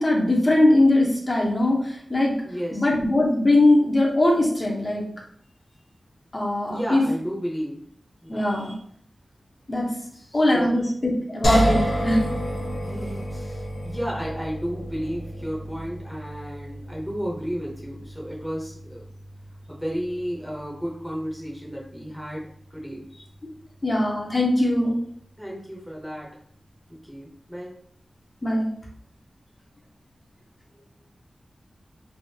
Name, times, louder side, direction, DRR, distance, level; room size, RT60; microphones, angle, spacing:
voice 1, 0.0-2.3 2.7-5.0 6.3-7.0 8.3-8.8 9.7-9.9 10.3-12.2 23.8-24.9 28.4-28.7, left 1 dB, 35° left, -3 dB, 0.8 m, -21 dB
voice 2, 2.4-2.8 6.7-7.8 8.2-8.5 10.1-10.8 12.8-19.0 19.7-22.4 22.7-23.1 25.4-26.3 26.9-27.8, equal, ahead, -4 dB, 0.8 m, -33 dB
sound 1, 11.4-24.5, equal, 75° left, 0.9 m, -31 dB
3.4 x 2.6 x 2.8 m, 0.64 s
wide cardioid pair, 95°, 0 cm